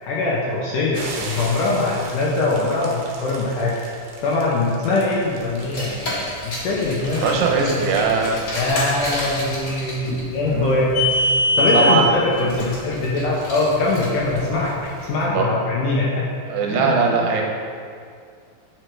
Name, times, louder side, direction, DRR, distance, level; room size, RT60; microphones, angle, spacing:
voice 1, 0.0-3.8 4.2-7.8 8.5-11.1 11.6-14.7 15.1-16.3 16.7-16.9, left 2 dB, 70° left, -5 dB, 2.1 m, -22 dB
sound 1, 0.9-15.1, right 3 dB, 65° right, 2.4 m, -42 dB
Car, 5.5-15.0, left 1 dB, 35° left, 1.9 m, -26 dB
voice 2, 7.2-8.4 10.5-10.7 11.7-12.1 15.3-15.5 16.5-17.4, right 5 dB, 85° right, 1 dB, 3.1 m, -20 dB
9.1 x 6.3 x 4.8 m, 2.2 s
omnidirectional pair, 4.9 m